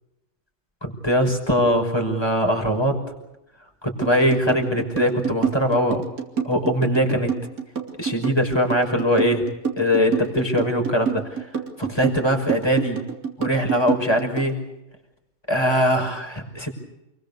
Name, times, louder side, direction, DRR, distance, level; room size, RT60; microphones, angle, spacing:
voice 1, 0.8-3.0 3.8-6.0 6.4-7.3 8.0-9.4 9.8-11.2 11.8-13.0 13.4-14.6 15.5-16.7, equal, 15° left, 2 dB, 5.8 m, -21 dB
sound 1, 4.0-14.5, right 6 dB, 85° right, 3.7 m, -27 dB
29.5 x 22.5 x 6.9 m, 0.91 s
omnidirectional pair, 1.4 m